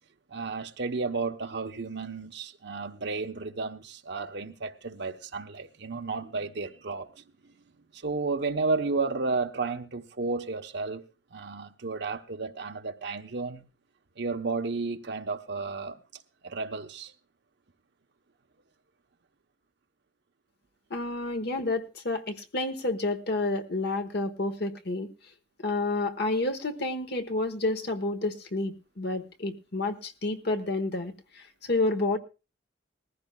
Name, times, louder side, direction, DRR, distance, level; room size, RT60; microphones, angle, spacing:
voice 1, 0.3-7.2 7.9-11.0 11.3-13.6 14.2-17.1, right 4 dB, 60° right, 0.9 m, -32 dB
voice 2, 20.9-25.1 25.6-32.2, left 2 dB, 55° left, 1.2 m, -30 dB
19.5 x 15.0 x 2.3 m
head